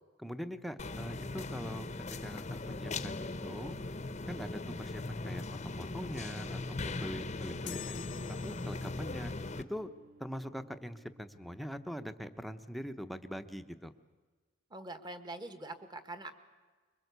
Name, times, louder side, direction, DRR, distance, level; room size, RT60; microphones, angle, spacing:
voice 1, 0.2-1.9 2.2-3.8 4.3-6.6 6.8-9.3 9.7-9.9 10.2-13.9, equal, ahead, 8 dB, 0.9 m, -43 dB
sound 1, 0.8-9.6, left 2 dB, 35° left, 0.9 m, -39 dB
sound 2, 6.8-12.1, equal, 60° right, 3.2 m, -62 dB
sound 3, 7.7-9.2, left 12 dB, 65° left, 0.9 m, -47 dB
voice 2, 14.7-16.3, right 2 dB, 25° right, 9 dB, 1.6 m, -44 dB
25.0 x 22.5 x 8.2 m, 1.4 s
head